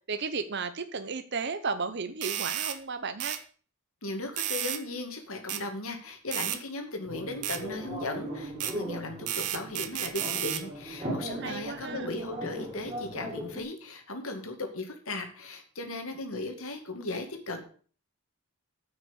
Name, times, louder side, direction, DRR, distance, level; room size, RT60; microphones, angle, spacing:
voice 1, 0.1-3.4 11.4-12.1, right 4 dB, 50° right, 10 dB, 0.7 m, -34 dB
sound 1, 2.2-2.8 3.2-3.4 4.4-4.8 5.5-5.6 6.3-6.6 7.4-7.6 8.6-8.8 9.3-10.6, right 11 dB, 85° right, 1.1 m, -32 dB
voice 2, 4.0-17.6, left 2 dB, 70° left, 5 dB, 2.3 m, -37 dB
sound 2, 7.0-13.6, right 1 dB, 25° right, 3.8 m, -38 dB
9.2 x 6.1 x 8.1 m, 0.43 s
head